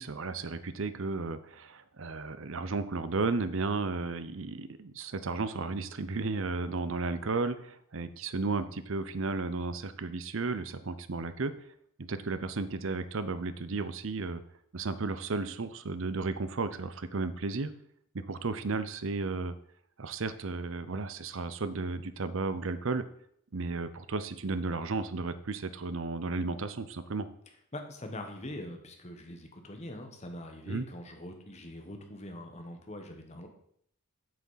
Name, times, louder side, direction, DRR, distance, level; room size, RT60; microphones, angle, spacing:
voice 1, 0.0-11.5 12.0-14.4 14.7-17.7 18.1-19.5 20.0-23.0 23.5-27.3 30.7-30.8, right 3 dB, 60° right, 13 dB, 0.7 m, -34 dB
voice 2, 27.7-33.5, left 1 dB, 30° left, 4 dB, 1.3 m, -43 dB
7.6 x 6.0 x 5.7 m, 0.68 s
head